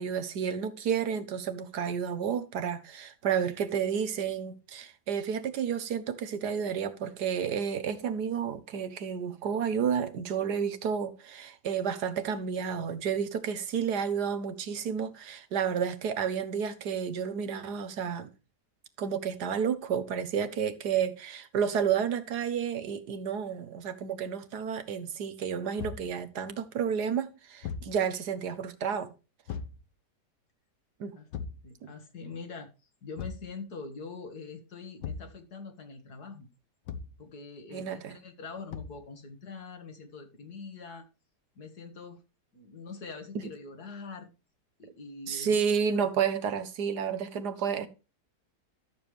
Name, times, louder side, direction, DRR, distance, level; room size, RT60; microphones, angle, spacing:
voice 1, 0.0-18.3 19.0-29.1 31.0-31.2 31.8-31.9 37.7-38.2 43.4-43.5 45.3-47.9, right 7 dB, 75° right, 1.6 m, -31 dB
Thump thud, 25.8-26.1 27.6-28.0 29.5-29.8 31.3-31.7 33.2-33.5 35.0-35.4 36.9-37.2 38.7-39.0, left 6 dB, 85° left, 1.6 m, -38 dB
voice 2, 31.6-32.7 33.0-36.5 37.2-41.1 41.6-42.2 42.5-44.3 44.8-45.6, left 4 dB, 65° left, 2.3 m, -44 dB
13.0 x 7.1 x 3.2 m
omnidirectional pair, 1.8 m